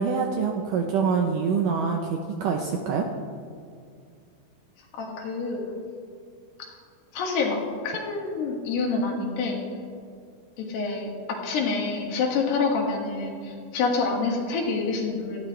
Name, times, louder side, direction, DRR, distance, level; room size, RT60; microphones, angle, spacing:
voice 1, 0.0-3.1, right 5 dB, 75° right, 3 dB, 2.0 m, -25 dB
voice 2, 4.9-5.6 7.1-9.6 10.6-15.5, left 4 dB, 85° left, -1 dB, 4.1 m, -27 dB
18.0 x 14.0 x 3.3 m, 2.3 s
omnidirectional pair, 4.7 m